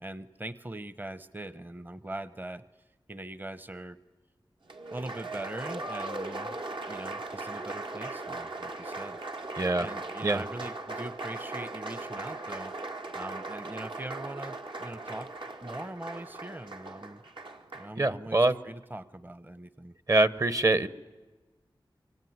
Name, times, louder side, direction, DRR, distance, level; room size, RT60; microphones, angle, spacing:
voice 1, 0.0-2.6 3.1-4.0 4.9-6.6 6.9-9.5 9.8-12.7 13.1-15.3 15.6-17.2 17.7-19.9, right 1 dB, 20° right, 15 dB, 0.8 m, -41 dB
Applause, 4.7-17.9, right 2 dB, 75° right, 1.8 m, -39 dB
voice 2, 9.5-9.9 10.2-10.4 18.0-18.5 20.1-20.9, right 2 dB, 40° right, 15 dB, 1.1 m, -24 dB
24.5 x 24.5 x 9.5 m, 1.3 s
wide cardioid pair, 75°, 8 cm